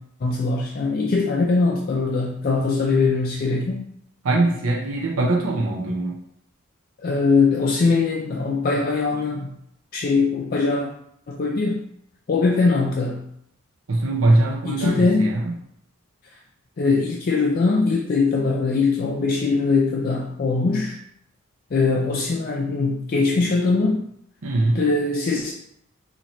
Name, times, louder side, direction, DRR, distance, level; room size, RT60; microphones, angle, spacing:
voice 1, 0.2-3.8 7.0-9.5 9.9-10.9 11.3-11.8 12.3-13.2 14.6-15.3 16.8-21.0 21.7-24.0 24.8-25.5, left 4 dB, 40° left, -1 dB, 0.4 m, -21 dB
voice 2, 4.2-6.2 13.9-15.5 24.4-24.9, right 2 dB, 70° right, -2 dB, 0.7 m, -22 dB
3.0 x 2.8 x 4.2 m, 0.71 s
head